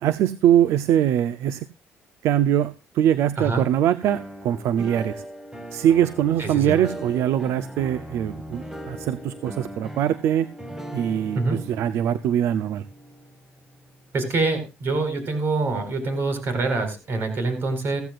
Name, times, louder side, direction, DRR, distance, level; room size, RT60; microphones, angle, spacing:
voice 1, 0.0-1.7 2.2-5.2 5.7-10.5 10.9-11.4 11.7-12.8, right 10 dB, 75° right, 0.6 m, -22 dB
voice 2, 3.4-3.7 6.4-6.8 11.3-11.6 14.1-18.0, right 3 dB, 50° right, 4.5 m, -25 dB
sound 1, 4.0-14.0, equal, 10° right, 1.5 m, -38 dB
15.5 x 15.5 x 2.5 m
cardioid pair, 110°, 5 cm